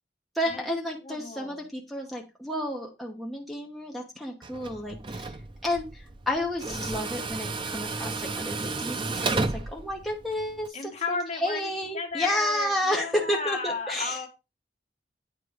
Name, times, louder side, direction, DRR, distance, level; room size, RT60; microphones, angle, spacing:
voice 1, 0.3-5.4 5.6-9.4 9.7-14.2, left 1 dB, ahead, 1 dB, 1.0 m, -31 dB
voice 2, 1.0-1.6 10.7-14.3, left 4 dB, 40° left, 3 dB, 1.5 m, -34 dB
Tools, 4.4-10.7, right 3 dB, 30° right, 0.5 m, -33 dB
9.0 x 3.7 x 4.9 m, 0.26 s
head